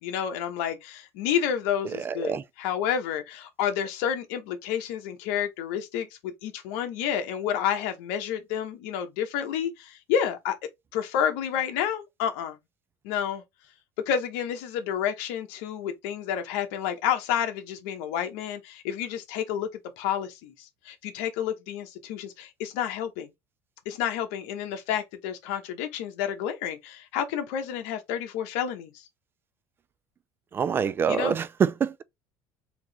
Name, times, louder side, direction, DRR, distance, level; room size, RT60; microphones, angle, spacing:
voice 1, 0.0-10.6 10.9-12.6 13.0-13.4 14.1-19.7 20.0-23.3 23.8-29.0 31.1-31.4, left 9 dB, 80° left, 1.0 m, -30 dB
voice 2, 2.0-2.4 30.5-32.0, right 7 dB, 30° right, 0.3 m, -25 dB
3.6 x 2.9 x 3.4 m
supercardioid pair, 115°, 8 cm